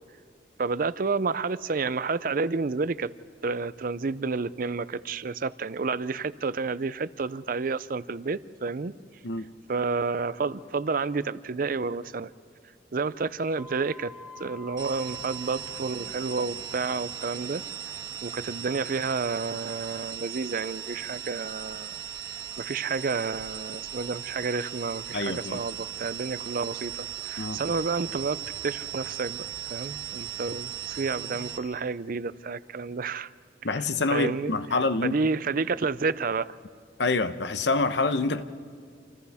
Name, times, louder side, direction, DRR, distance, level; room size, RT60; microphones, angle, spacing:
voice 1, 0.6-3.1 3.4-9.0 9.7-12.3 12.9-14.1 14.4-17.6 18.2-22.0 22.6-29.4 29.7-33.3 34.1-34.5 35.0-36.5, right 4 dB, 50° right, 16 dB, 0.5 m, -30 dB
sound 1, 13.6-16.2, left 1 dB, 5° right, 0.8 m, -47 dB
sound 2, 14.8-31.6, right 10 dB, 25° right, 1.4 m, -38 dB
voice 2, 25.1-25.6 27.4-27.6 33.6-35.2 37.0-38.4, left 3 dB, 70° left, 11 dB, 0.9 m, -26 dB
28.5 x 27.5 x 3.5 m, 2.1 s
head